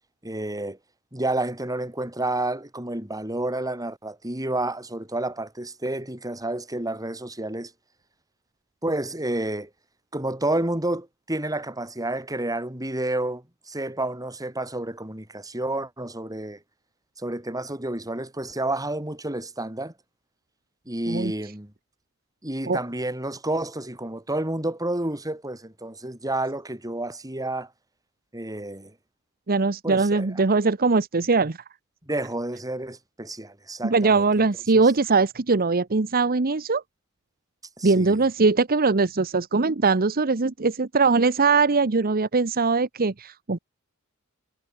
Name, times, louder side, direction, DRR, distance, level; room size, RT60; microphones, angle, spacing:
voice 1, 0.2-0.8 1.1-7.7 8.8-9.7 10.1-16.6 17.2-19.9 20.9-21.7 22.4-27.7 28.3-28.9 29.8-30.3 32.1-34.3 34.7-34.8 37.8-38.2, right 1 dB, 15° right, 6.2 m, -30 dB
voice 2, 29.5-31.6 33.8-36.8 37.8-43.6, right 4 dB, 45° right, 0.9 m, -21 dB
head